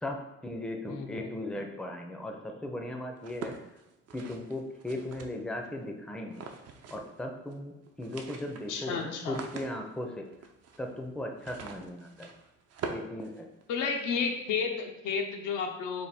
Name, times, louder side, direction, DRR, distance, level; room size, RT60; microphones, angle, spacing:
voice 1, 0.0-3.6 4.1-6.4 6.9-10.3 10.8-12.3 12.9-13.5, left 1 dB, 5° left, 3 dB, 0.4 m, -37 dB
voice 2, 0.9-1.3 8.7-9.4 13.7-16.1, left 5 dB, 85° left, 3 dB, 0.6 m, -32 dB
sound 1, 3.2-5.7 6.3-7.2 7.5-7.6 7.9-14.0, right 5 dB, 55° right, 0.5 m, -44 dB
3.4 x 2.2 x 4.1 m, 0.95 s
cardioid pair, 90°, 30 cm